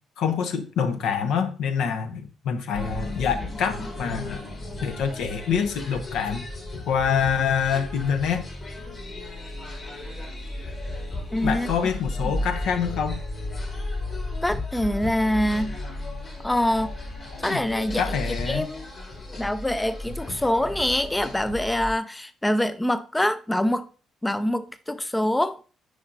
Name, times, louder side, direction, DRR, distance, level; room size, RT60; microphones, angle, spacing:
voice 1, 0.2-4.4 4.8-6.4 6.9-8.4 11.4-13.2 17.5-17.6 18.0-18.7, left 7 dB, 65° left, 0.7 m, -26 dB
sound 1, 2.7-21.9, left 1 dB, 45° left, 3.1 m, -34 dB
voice 2, 11.3-11.7 12.3-12.4 14.4-15.8 16.4-16.9 17.4-18.1 18.5-18.9 19.4-23.9 24.2-25.6, left 1 dB, 10° left, 0.4 m, -25 dB
9.7 x 4.9 x 2.6 m
hypercardioid pair, 45°, 0 cm